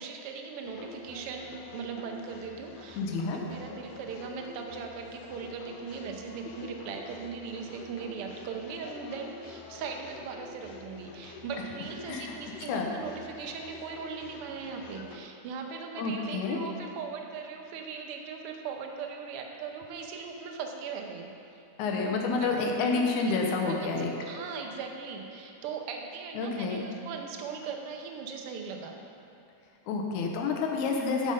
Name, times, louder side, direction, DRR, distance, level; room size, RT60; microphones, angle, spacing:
voice 1, 0.0-3.0 3.3-21.6 22.0-22.5 22.8-29.0, right 5 dB, 70° right, 2 dB, 1.4 m, -39 dB
sound 1, 0.6-15.2, left 4 dB, 70° left, 1.7 m, -47 dB
voice 2, 3.0-3.4 12.1-12.3 12.7-12.9 16.0-16.6 21.8-24.1 26.4-26.8 29.9-31.3, left 4 dB, 90° left, 1 dB, 2.3 m, -29 dB
13.0 x 5.0 x 5.3 m, 2.8 s
omnidirectional pair, 3.4 m